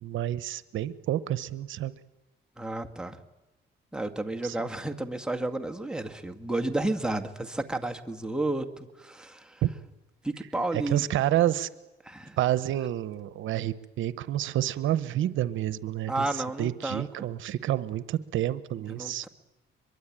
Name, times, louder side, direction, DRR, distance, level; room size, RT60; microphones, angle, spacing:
voice 1, 0.0-1.9 4.4-4.7 9.6-9.7 10.7-11.7 12.4-19.3, right 13 dB, 80° right, 15 dB, 0.9 m, -29 dB
voice 2, 2.6-3.2 3.9-9.6 10.2-11.1 12.0-12.4 16.1-17.3 18.9-19.3, right 2 dB, 5° right, 4 dB, 2.0 m, -32 dB
23.0 x 23.0 x 8.9 m, 1.0 s
cardioid pair, 90°, 20 cm